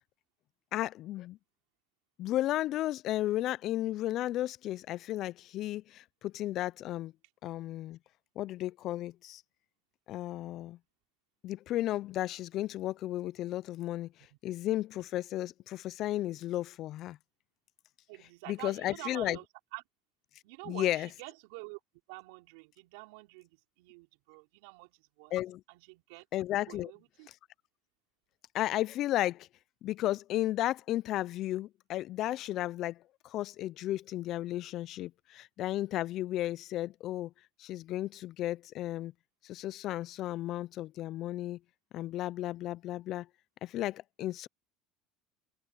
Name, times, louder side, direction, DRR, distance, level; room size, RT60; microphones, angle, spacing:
voice 1, 0.7-1.4 2.2-7.1 7.4-8.0 8.4-9.4 10.1-10.8 11.4-14.1 14.4-17.2 18.5-19.4 20.7-21.1 25.3-25.6 26.3-26.9 28.5-29.5 29.8-37.3 37.6-39.1 39.4-41.6 41.9-43.3 43.6-44.5, left 14 dB, 55° left, 0.5 m, -34 dB
voice 2, 18.1-19.4 19.7-19.8 20.4-21.8 22.1-25.3 25.7-26.2 26.7-27.3, right 29 dB, 80° right, 4.9 m, -47 dB
supercardioid pair, 90°, 0 cm